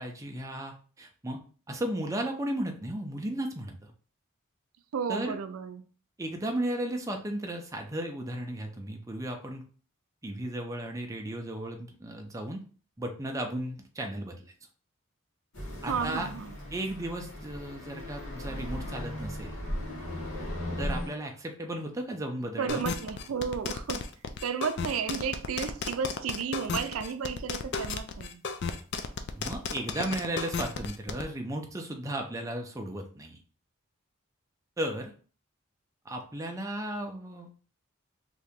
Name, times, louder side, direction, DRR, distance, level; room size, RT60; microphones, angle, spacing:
voice 1, 0.0-1.4 1.7-3.9 5.1-5.4 6.2-9.6 10.2-12.6 13.0-14.4 15.8-16.3 16.7-19.6 20.8-22.8 29.3-33.4 34.8-35.1 36.1-37.5, right 1 dB, 15° right, 0.5 m, -35 dB
voice 2, 4.9-5.9 15.9-16.5 22.6-24.1 24.4-28.4, right 6 dB, 85° right, 0.4 m, -33 dB
sound 1, 15.5-21.1, equal, 80° left, 1.3 m, -37 dB
sound 2, 22.7-31.2, left 5 dB, 55° left, 0.4 m, -34 dB
3.0 x 2.8 x 3.5 m
head